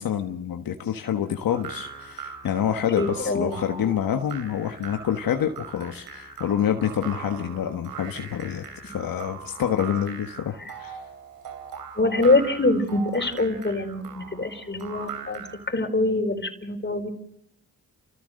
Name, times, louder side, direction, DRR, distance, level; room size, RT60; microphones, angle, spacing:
voice 1, 0.0-11.0, left 9 dB, 75° left, 5 dB, 1.4 m, -27 dB
sound 1, 1.5-15.7, right 6 dB, 90° right, 3.2 m, -40 dB
voice 2, 3.0-3.6 12.0-17.1, left 2 dB, 30° left, 6 dB, 4.4 m, -24 dB
29.5 x 14.5 x 6.5 m, 0.74 s
supercardioid pair, 50°, 34 cm